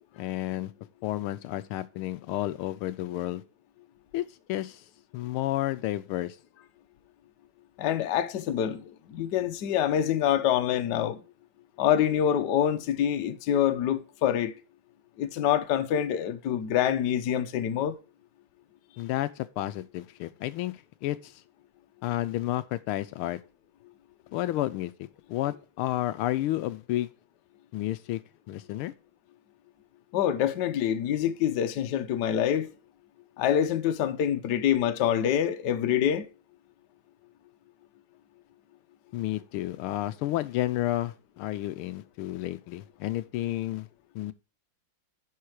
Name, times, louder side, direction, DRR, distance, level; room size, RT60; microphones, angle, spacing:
voice 1, 0.2-0.7 1.0-3.4 4.1-4.8 5.1-6.4 19.0-20.7 21.0-21.4 22.0-23.4 24.3-27.1 27.7-28.2 28.5-28.9 39.1-43.9 44.1-44.3, left 15 dB, 80° left, 1.5 m, -31 dB
voice 2, 7.8-11.2 11.8-14.6 15.2-18.0 30.1-32.7 33.4-36.3, left 10 dB, 65° left, 1.2 m, -26 dB
10.5 x 4.6 x 4.8 m
omnidirectional pair, 2.4 m